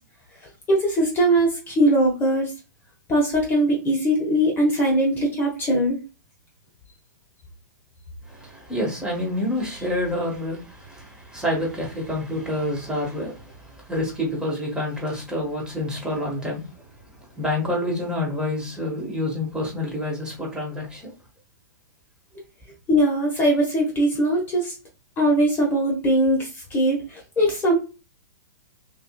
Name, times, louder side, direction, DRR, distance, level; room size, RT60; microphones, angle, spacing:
voice 1, 0.7-2.5 3.1-6.0 22.9-24.7 25.2-27.8, right 1 dB, 20° left, 1.4 m, -21 dB
voice 2, 8.3-16.6 17.4-21.1 22.3-22.4, left 1 dB, 10° right, 1.7 m, -28 dB
5.6 x 2.6 x 2.4 m
hypercardioid pair, 115°, 10 cm